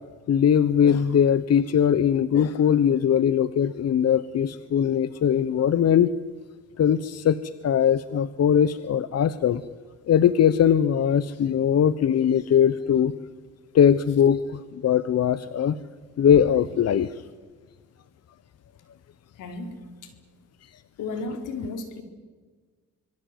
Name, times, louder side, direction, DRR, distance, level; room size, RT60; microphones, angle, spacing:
voice 1, 0.3-6.1 6.8-9.6 10.1-13.1 13.7-15.8 16.2-17.1, left 8 dB, 55° left, 15 dB, 1.0 m, -21 dB
voice 2, 19.4-19.7 21.0-22.0, left 3 dB, 80° left, 6 dB, 4.4 m, -33 dB
26.0 x 22.0 x 9.2 m, 1.4 s
cardioid pair, 90°, 30 cm